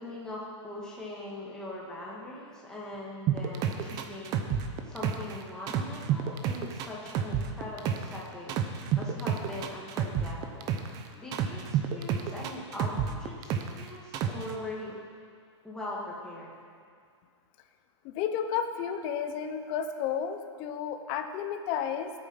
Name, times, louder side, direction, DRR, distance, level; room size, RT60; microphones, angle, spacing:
voice 1, 0.0-10.7 11.2-15.0 15.6-16.5, left 1 dB, 5° left, -5 dB, 2.4 m, -41 dB
sound 1, 3.3-5.4 5.7-8.2 8.5-11.0 11.3-13.8 14.1-14.5, right 9 dB, 25° right, 0.8 m, -29 dB
voice 2, 18.0-22.1, left 8 dB, 30° left, 7 dB, 0.9 m, -32 dB
16.5 x 8.7 x 5.7 m, 2.1 s
hypercardioid pair, 155°, 15 cm